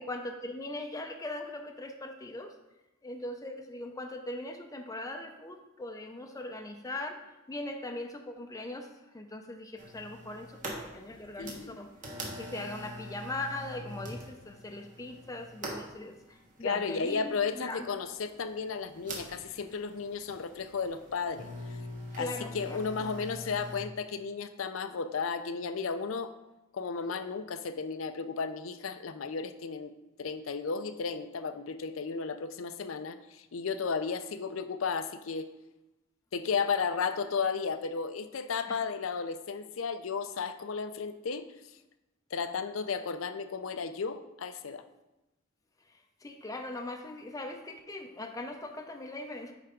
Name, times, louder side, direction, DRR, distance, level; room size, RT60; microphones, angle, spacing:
voice 1, 0.0-2.5 3.0-7.2 7.5-8.9 9.1-11.9 12.4-17.9 22.1-23.1 38.7-38.8 45.9-49.5, left 2 dB, 15° left, 4 dB, 0.5 m, -40 dB
sound 1, 9.8-23.8, equal, 40° right, 1.3 m, -44 dB
voice 2, 11.4-11.8 16.6-21.5 22.2-22.3 22.5-26.3 26.7-29.9 30.2-35.5 36.3-41.5 42.3-44.8, left 5 dB, 75° left, 11 dB, 0.5 m, -34 dB
9.1 x 3.5 x 5.0 m, 0.99 s
head